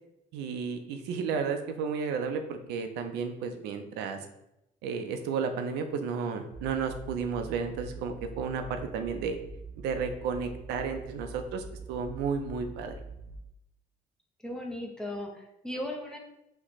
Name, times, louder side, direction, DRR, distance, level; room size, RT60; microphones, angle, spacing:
voice 1, 0.3-4.2 4.8-9.4 9.8-13.0, right 5 dB, 85° right, 6 dB, 0.5 m, -33 dB
sound 1, 6.5-13.4, right 3 dB, 60° right, 0.8 m, -44 dB
voice 2, 14.4-16.2, left 1 dB, 5° left, 0 dB, 0.6 m, -37 dB
3.0 x 2.1 x 4.0 m, 0.84 s
cardioid pair, 110°, 17 cm